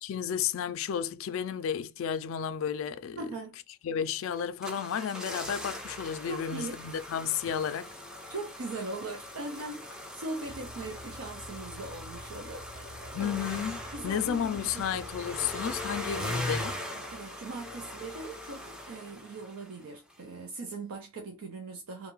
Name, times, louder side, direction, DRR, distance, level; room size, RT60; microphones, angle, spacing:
voice 1, 0.0-3.3 3.8-7.9 13.1-16.8, left 8 dB, 75° left, 0.3 m, -32 dB
voice 2, 3.2-3.5 6.3-6.9 7.5-7.6 8.3-13.4 13.9-15.0 15.4-15.5 16.9-22.1, right 2 dB, 90° right, 0.5 m, -40 dB
sound 1, 4.3-19.8 20.1-20.2, left 1 dB, 5° right, 0.4 m, -40 dB
sound 2, 10.4-16.7, left 1 dB, 70° right, 1.0 m, -48 dB
2.6 x 2.3 x 3.0 m
head